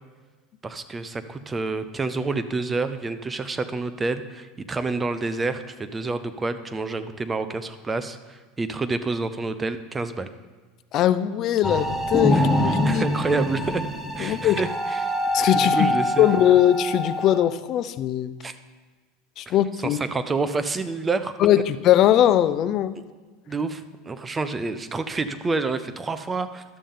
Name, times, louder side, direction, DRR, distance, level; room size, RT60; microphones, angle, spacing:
voice 1, 0.6-10.3 12.3-12.5 12.8-13.8 14.2-15.1 15.5-16.3 18.4-18.5 19.5-21.4 23.5-26.6, right 3 dB, 15° right, 11 dB, 0.5 m, -28 dB
voice 2, 10.9-13.1 14.2-14.6 15.3-15.9 16.2-18.3 19.4-20.0 21.4-22.9, left 12 dB, 40° left, 14 dB, 0.4 m, -20 dB
sound 1, 11.6-17.4, left 1 dB, 5° left, 1.0 m, -25 dB
12.0 x 6.9 x 3.7 m, 1.4 s
supercardioid pair, 140°, 0 cm